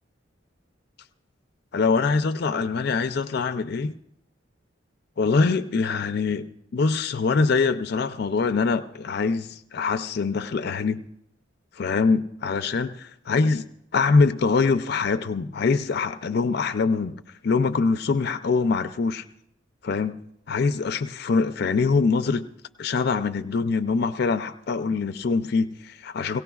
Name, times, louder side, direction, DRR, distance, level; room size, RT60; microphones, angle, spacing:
voice 1, 1.7-3.9 5.2-11.1 11.8-13.7 13.9-17.1 17.4-19.2 19.8-22.5 22.8-26.4, left 4 dB, 55° left, 10 dB, 0.4 m, -24 dB
23.5 x 18.0 x 2.3 m, 0.78 s
head